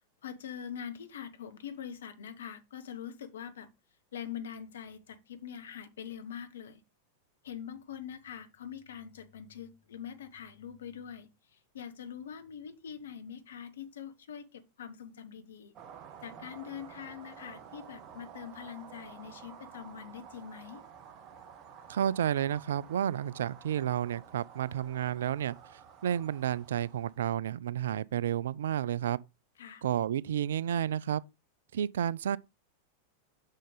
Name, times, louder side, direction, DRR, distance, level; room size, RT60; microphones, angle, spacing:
voice 1, 0.2-3.7 4.1-6.8 7.4-11.3 11.7-15.7 16.2-20.8 29.6-29.8, left 8 dB, 65° left, 1.1 m, -44 dB
sound 1, 15.8-27.3, right 7 dB, 35° right, 1.2 m, -51 dB
voice 2, 21.9-25.6 26.0-29.2 29.8-31.2 31.7-32.4, right 10 dB, 60° right, 0.3 m, -31 dB
6.5 x 6.4 x 3.9 m
figure-of-eight pair, 90°, 0 cm